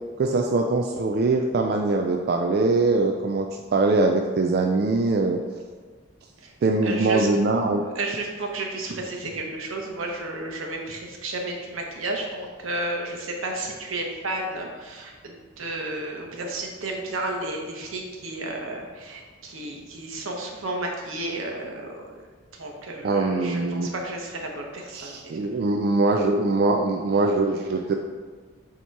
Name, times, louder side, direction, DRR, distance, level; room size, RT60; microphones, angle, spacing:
voice 1, 0.2-5.4 6.6-7.9 23.0-23.9 24.9-27.9, right 3 dB, 50° right, 3 dB, 0.3 m, -22 dB
voice 2, 6.8-7.3 7.9-22.2 22.5-25.4, right 2 dB, 80° right, 1 dB, 1.0 m, -32 dB
7.1 x 2.9 x 4.5 m, 1.5 s
head